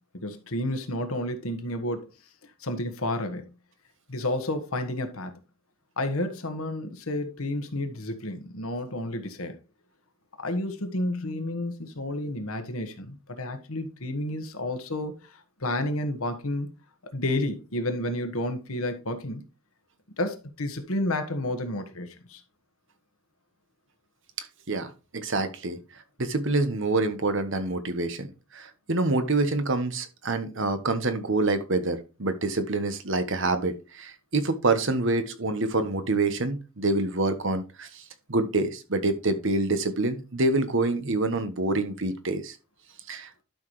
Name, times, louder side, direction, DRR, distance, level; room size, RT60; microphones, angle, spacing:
voice 1, 0.1-2.0 2.6-3.5 4.1-5.3 6.0-9.6 10.4-16.7 17.1-19.5 20.2-22.4, left 1 dB, 75° left, 1.5 m, -31 dB
voice 2, 24.4-25.8 26.2-28.3 28.5-38.0 38.3-42.6 43.1-43.3, right 2 dB, 60° right, 1.2 m, -26 dB
11.5 x 6.0 x 3.2 m
head